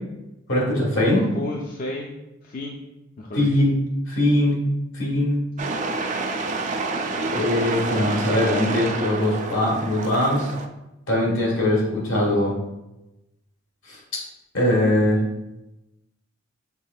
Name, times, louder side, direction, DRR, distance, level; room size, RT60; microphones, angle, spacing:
voice 1, 0.5-1.2 3.3-3.7 4.1-4.6 4.9-5.4 7.3-10.5 11.1-12.5 13.9-14.0 14.5-15.2, left 1 dB, 70° left, -3 dB, 1.5 m, -21 dB
voice 2, 1.1-2.8 3.2-3.5, left 1 dB, 45° left, -1 dB, 0.5 m, -32 dB
sound 1, 5.6-10.7, right 3 dB, 40° right, 0.4 m, -28 dB
6.0 x 3.5 x 2.3 m, 0.95 s
head